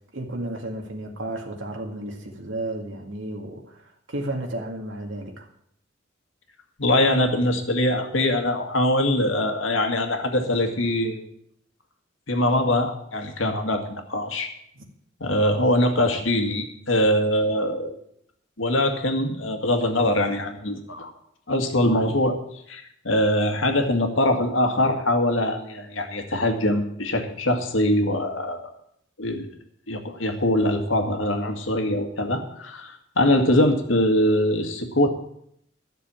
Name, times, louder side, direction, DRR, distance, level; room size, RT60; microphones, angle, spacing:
voice 1, 0.1-5.5 14.8-14.9, right 1 dB, 80° right, 2 dB, 2.2 m, -33 dB
voice 2, 6.8-11.2 12.3-14.5 15.2-18.0 18.6-21.1 21.5-22.4 22.7-28.7 29.2-29.5 29.9-35.1, left 1 dB, 85° left, 5 dB, 2.0 m, -23 dB
13.0 x 6.7 x 8.8 m, 0.72 s
head